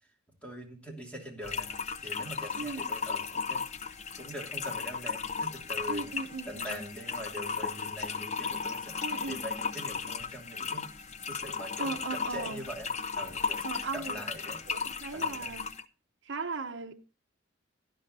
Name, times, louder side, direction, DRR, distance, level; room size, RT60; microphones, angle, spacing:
voice 1, 0.4-1.7 2.0-3.6 4.2-6.1 6.5-9.0 9.3-10.9 11.3-12.9 13.2-13.7 13.9-14.6 15.1-15.5, right 1 dB, 5° left, 2.8 m, -43 dB
sound 1, 1.4-15.8, left 5 dB, 35° left, 0.6 m, -35 dB
voice 2, 5.9-6.8 9.0-9.4 11.8-12.6 13.6-14.2 14.7-15.7 16.2-16.9, right 3 dB, 60° right, 1.0 m, -37 dB
17.5 x 11.0 x 2.7 m
head